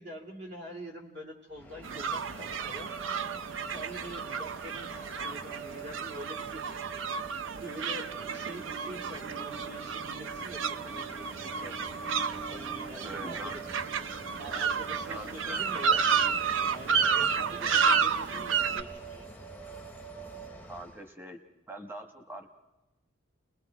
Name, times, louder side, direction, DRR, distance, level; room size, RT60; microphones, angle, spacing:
voice 1, 0.0-2.9 3.7-4.9 5.2-12.0 12.5-13.6 14.4-16.2 16.7-19.3, equal, 55° right, 2 dB, 2.8 m, -45 dB
Train, 1.6-21.0, equal, 10° left, 0.7 m, -48 dB
sound 1, 1.8-18.8, right 6 dB, 75° right, 0.6 m, -31 dB
sound 2, 1.9-20.5, right 10 dB, 40° right, 3.4 m, -46 dB
voice 2, 13.0-13.6 15.1-16.0 20.6-21.4 21.7-22.5, right 1 dB, 10° right, 6 dB, 1.1 m, -43 dB
29.0 x 20.5 x 4.7 m, 1.0 s
head